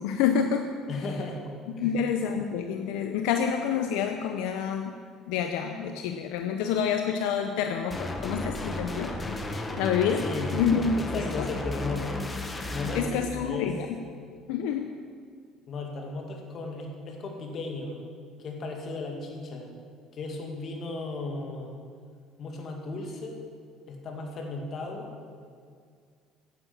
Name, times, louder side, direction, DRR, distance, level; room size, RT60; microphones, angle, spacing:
voice 1, 0.0-0.7 1.8-5.0 5.3-10.2 10.5-11.5 12.9-13.9 14.5-14.9, left 7 dB, 80° left, 5 dB, 0.6 m, -28 dB
voice 2, 0.9-1.4 1.8-2.0 10.2-10.5 11.0-12.2 12.7-13.8 15.7-18.0 18.4-19.7 20.1-21.7 22.4-23.5 23.9-25.1, left 3 dB, 50° left, 1 dB, 2.3 m, -35 dB
sound 1, 7.9-13.1, left 2 dB, 20° left, 1.2 m, -33 dB
9.7 x 8.9 x 7.5 m, 2.1 s
supercardioid pair, 100°, 0 cm